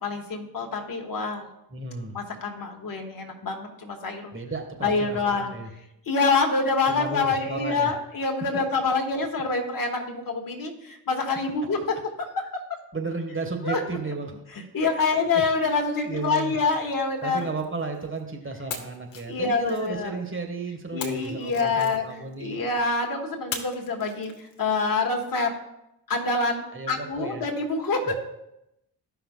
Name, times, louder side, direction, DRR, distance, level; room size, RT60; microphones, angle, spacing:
voice 1, 0.0-1.5 2.1-4.3 4.8-5.5 6.1-11.8 12.2-12.5 13.6-13.8 14.7-17.5 19.3-20.2 20.9-22.0 22.4-25.5 26.1-28.2, left 4 dB, 40° left, 2 dB, 1.8 m, -26 dB
voice 2, 1.7-2.2 4.3-5.7 6.9-7.9 12.9-14.3 15.3-15.4 16.0-16.6 17.2-22.6 26.7-27.4 28.0-28.2, right 3 dB, 25° right, 4 dB, 1.5 m, -33 dB
sound 1, 15.9-18.2 18.7-20.3 21.0-22.4 23.5-24.9, left 6 dB, 65° left, 1.2 m, -41 dB
14.5 x 5.8 x 2.3 m, 0.86 s
hypercardioid pair, 45°, 49 cm